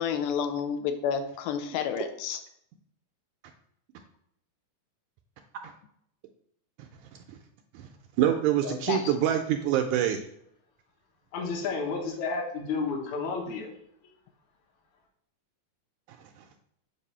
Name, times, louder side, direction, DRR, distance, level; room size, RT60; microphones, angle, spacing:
voice 1, 0.0-2.4 8.6-9.1, left 7 dB, 85° left, 8 dB, 2.2 m, -30 dB
voice 2, 8.2-10.2, right 10 dB, 80° right, 5 dB, 1.8 m, -25 dB
voice 3, 11.3-13.7, left 4 dB, 65° left, 0 dB, 2.4 m, -31 dB
7.5 x 2.6 x 5.5 m, 0.70 s
omnidirectional pair, 3.7 m